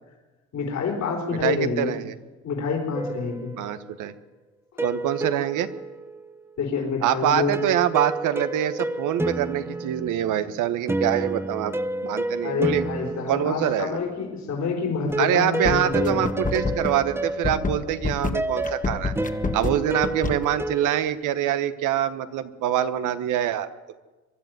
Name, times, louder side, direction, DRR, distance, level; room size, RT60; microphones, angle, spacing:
voice 1, 0.5-1.9 2.4-3.5 4.7-4.8 6.6-7.6 12.4-16.2, left 5 dB, 65° left, 0 dB, 4.2 m, -27 dB
voice 2, 1.4-2.1 3.6-4.1 4.8-5.7 7.0-11.7 12.0-12.8 13.3-14.0 15.2-19.1 19.5-23.7, right 11 dB, 90° right, 11 dB, 1.1 m, -25 dB
sound 1, 2.9-4.0 4.8-6.6 7.5-14.2 15.1-21.1, right 1 dB, 10° right, 0.8 m, -30 dB
sound 2, 15.1-15.3 15.6-20.5, left 4 dB, 25° left, 1.4 m, -27 dB
23.5 x 12.0 x 9.4 m, 1.2 s
cardioid pair, 90°, 30 cm